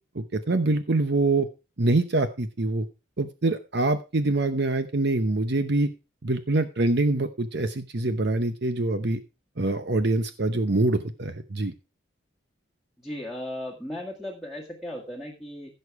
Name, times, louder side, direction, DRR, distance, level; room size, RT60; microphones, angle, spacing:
voice 1, 0.1-1.5 1.8-2.9 3.2-5.9 6.2-9.2 9.6-11.7, right 2 dB, 55° right, 9 dB, 0.8 m, -25 dB
voice 2, 13.0-15.7, left 1 dB, ahead, 0 dB, 1.9 m, -36 dB
16.0 x 6.6 x 4.7 m, 0.30 s
head